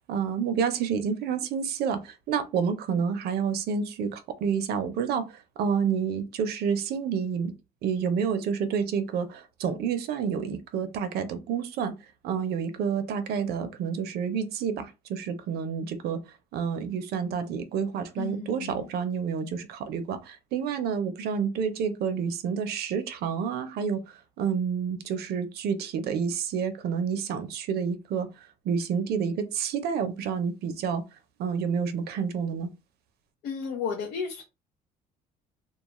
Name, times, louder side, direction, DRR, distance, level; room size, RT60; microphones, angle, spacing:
voice 1, 0.1-7.5 7.8-12.0 12.2-16.2 16.5-31.0 31.4-32.7, right 6 dB, 70° right, 0.5 m, -29 dB
voice 2, 18.2-18.9 33.4-34.4, left 6 dB, 85° left, 0.7 m, -33 dB
2.3 x 2.3 x 2.9 m
cardioid pair, 110°, 17 cm